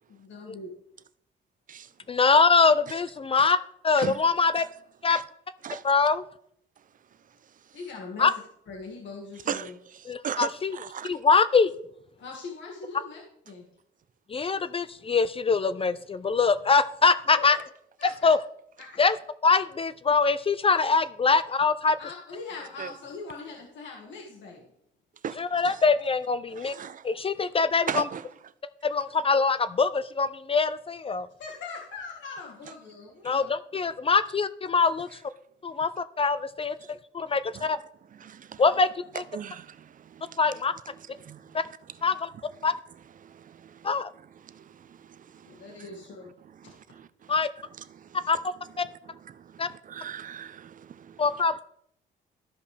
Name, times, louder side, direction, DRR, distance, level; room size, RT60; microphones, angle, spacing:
voice 1, 0.2-0.8 7.7-8.3 8.7-9.7 12.2-13.6 17.4-17.5 18.0-18.3 18.8-19.0 22.0-24.6 31.4-33.5 45.4-46.3, left 4 dB, 65° left, 1.7 m, -41 dB
voice 2, 2.1-3.6 3.8-4.6 5.0-5.2 5.8-6.3 8.2-8.3 10.1-10.8 11.0-11.7 14.3-17.6 18.2-18.4 19.0-19.2 19.4-22.0 25.4-26.7 27.0-28.0 28.8-31.3 33.2-35.1 35.6-36.7 37.1-37.8 38.6-38.9 40.4-40.7 41.5-41.6 42.0-42.3 42.6-42.7 43.8-44.1 47.3-47.5 48.3-48.4 49.6-49.7 51.2-51.7, left 4 dB, 30° left, 0.4 m, -23 dB
voice 3, 7.1-7.8 9.3-11.2 22.8-22.9 25.2-25.8 26.5-27.1 27.9-28.5 36.8-37.0 37.3-37.7 38.1-38.6 39.1-42.1 42.3-42.7 43.2-51.4, right 8 dB, 45° right, 0.5 m, -40 dB
13.0 x 5.2 x 3.3 m
cardioid pair, 90°, 20 cm